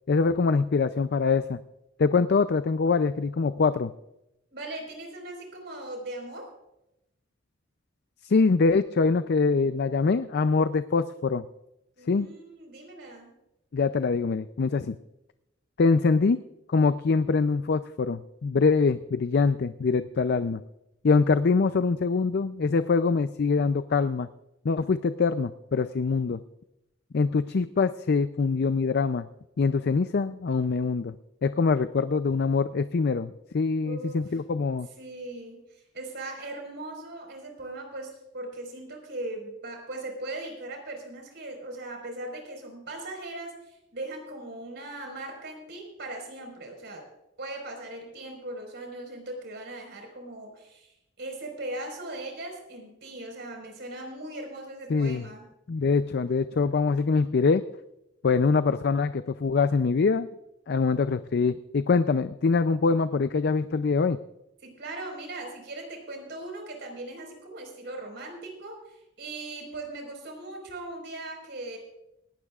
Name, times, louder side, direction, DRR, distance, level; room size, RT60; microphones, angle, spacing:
voice 1, 0.1-1.6 2.0-3.9 8.2-11.4 12.1-12.3 13.7-15.0 15.8-16.4 16.7-20.6 21.0-24.3 24.6-26.4 27.1-29.3 29.6-31.2 31.4-34.9 54.9-55.3 55.7-57.6 58.2-60.3 60.7-64.2, left 4 dB, 60° left, 12 dB, 0.4 m, -24 dB
voice 2, 4.5-6.5 12.0-13.3 33.8-34.3 35.0-47.0 47.4-55.5 64.6-71.8, right 2 dB, 65° right, 2 dB, 4.6 m, -39 dB
19.5 x 16.5 x 2.4 m, 0.87 s
head